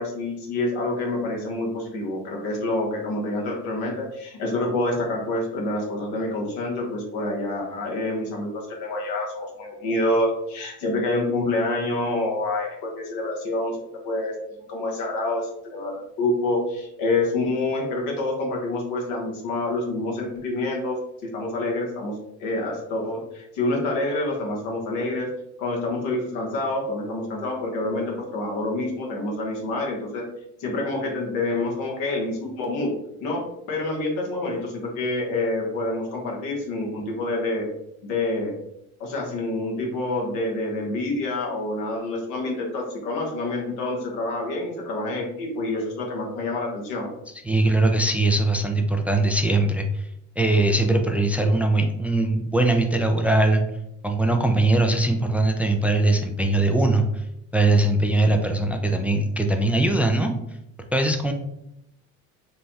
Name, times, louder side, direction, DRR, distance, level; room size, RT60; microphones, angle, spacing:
voice 1, 0.0-22.1 22.4-25.3 25.6-30.2 30.6-32.9 33.2-37.7 38.0-38.5 39.0-47.1, left 2 dB, 80° left, -1 dB, 1.2 m, -27 dB
voice 2, 47.5-50.0 50.4-53.6 54.0-57.0 57.5-60.3 60.9-61.3, right 2 dB, 5° right, 4 dB, 0.4 m, -21 dB
3.4 x 2.2 x 4.0 m, 0.81 s
supercardioid pair, 85°, 34 cm